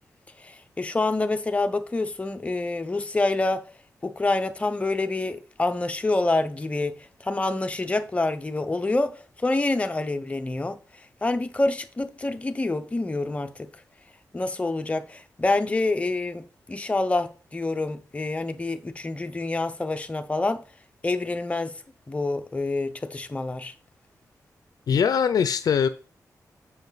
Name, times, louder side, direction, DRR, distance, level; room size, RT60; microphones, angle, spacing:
voice 1, 0.4-3.6 4.0-13.7 14.3-20.6 21.0-21.8 22.1-23.7, left 2 dB, 20° left, 0.7 m, -27 dB
voice 2, 24.9-25.9, left 7 dB, 75° left, 0.5 m, -21 dB
7.0 x 5.8 x 4.0 m
wide cardioid pair, 145°, 7 cm